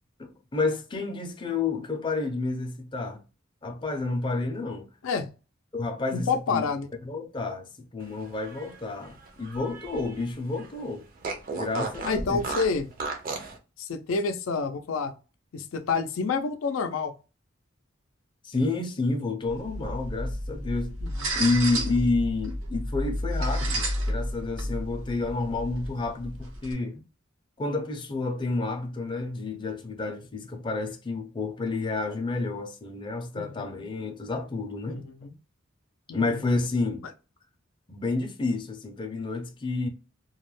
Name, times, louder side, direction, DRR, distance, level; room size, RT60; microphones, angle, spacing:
voice 1, 0.2-3.2 3.6-4.9 5.7-6.6 7.0-11.1 11.5-12.4 18.4-20.9 21.3-27.0 27.6-35.0 36.1-37.0 37.9-39.9, left 3 dB, 25° left, 0.4 m, -30 dB
voice 2, 6.1-6.9 12.0-12.9 13.8-15.1 15.5-17.1 21.0-21.3 33.3-33.6 34.9-35.3 36.1-36.4, left 4 dB, 90° left, 0.4 m, -29 dB
Fart, 8.2-10.3 10.6-10.7 11.2-13.6, right 3 dB, 45° right, 0.5 m, -35 dB
sound 1, 19.5-26.7, equal, 80° right, 0.7 m, -31 dB
2.3 x 2.1 x 3.1 m
head